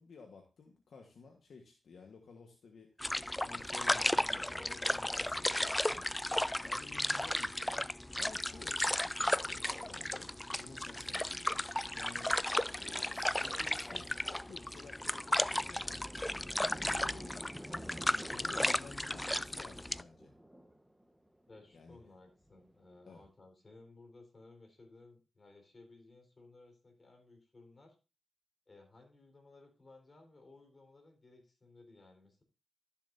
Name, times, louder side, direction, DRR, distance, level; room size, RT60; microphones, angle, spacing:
voice 1, 0.0-6.1 6.6-12.3 12.8-16.0 16.5-16.7 17.0-20.3 21.7-22.1 23.1-23.2, left 4 dB, 75° left, 3 dB, 1.4 m, -54 dB
sound 1, 3.0-20.0, left 1 dB, 15° left, 0.3 m, -34 dB
Thunder, 8.8-9.4 9.7-9.8 10.2-10.5 10.9-23.3, equal, 5° right, 1.3 m, -53 dB
voice 2, 21.5-28.0 28.7-32.4, left 2 dB, 40° left, 3 dB, 4.0 m, -58 dB
12.5 x 7.1 x 2.6 m, 0.31 s
cardioid pair, 65°, 0 cm